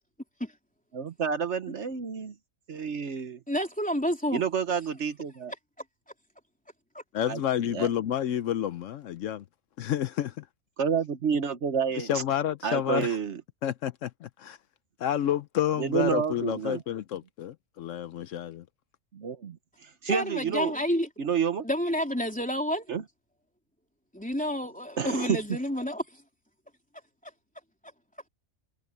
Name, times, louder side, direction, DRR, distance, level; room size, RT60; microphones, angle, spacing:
voice 1, 0.9-2.3 2.7-3.4 4.3-5.5 7.2-7.4 7.7-7.9 10.8-12.2 12.6-13.4 15.8-16.8 19.1-19.6 19.8-20.7 21.2-21.6 22.9-23.0 25.0-25.4, right 7 dB, 60° right, 1.2 m, -29 dB
voice 2, 3.5-4.4 6.9-7.0 20.1-21.1 21.6-22.9 24.1-26.0, equal, 5° left, 3.6 m, -29 dB
voice 3, 7.1-9.4 9.8-10.5 12.0-13.2 13.6-14.6 15.0-18.6, left 10 dB, 75° left, 1.0 m, -30 dB
omnidirectional pair, 1.4 m